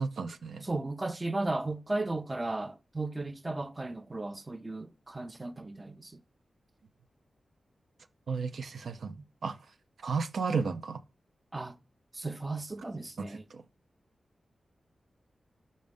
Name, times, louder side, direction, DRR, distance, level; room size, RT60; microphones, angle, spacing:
voice 1, 0.0-0.6 8.3-9.2 9.4-9.6 10.0-11.0 13.3-13.6, right 5 dB, 75° right, 0.5 m, -33 dB
voice 2, 0.6-6.2 9.2-9.3 11.5-11.8 12.1-13.4, right 2 dB, 25° right, 0.6 m, -35 dB
5.2 x 5.1 x 3.6 m
wide cardioid pair, 85°, 0 cm